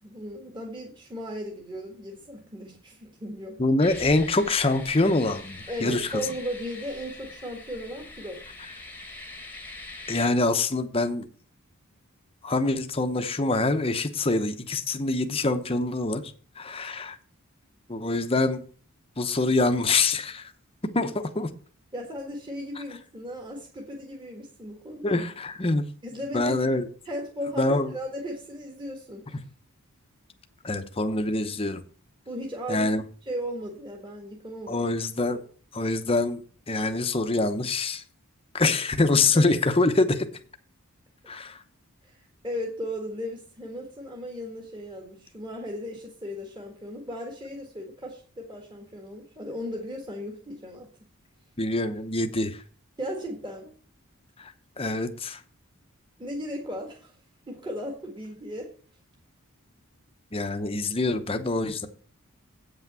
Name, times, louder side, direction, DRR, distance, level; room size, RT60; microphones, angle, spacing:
voice 1, 0.0-3.6 5.7-8.4 21.9-25.2 26.0-26.6 27.0-29.4 32.3-32.9 33.2-34.9 39.3-39.6 42.0-50.9 53.0-53.7 56.2-57.1 57.5-58.7, equal, 20° right, -1 dB, 1.6 m, -36 dB
voice 2, 3.6-6.2 10.1-11.3 12.4-17.2 17.9-18.6 19.2-20.5 20.9-21.5 25.0-25.8 26.3-26.9 27.6-27.9 30.6-31.8 32.7-33.0 34.7-35.4 35.7-36.4 36.7-38.0 38.5-40.2 41.3-41.6 51.6-52.6 54.4-55.4 60.3-61.9, left 2 dB, 25° left, 8 dB, 0.8 m, -25 dB
sound 1, 3.8-10.3, left 2 dB, 10° left, 1.2 m, -43 dB
8.4 x 5.9 x 6.8 m, 0.43 s
head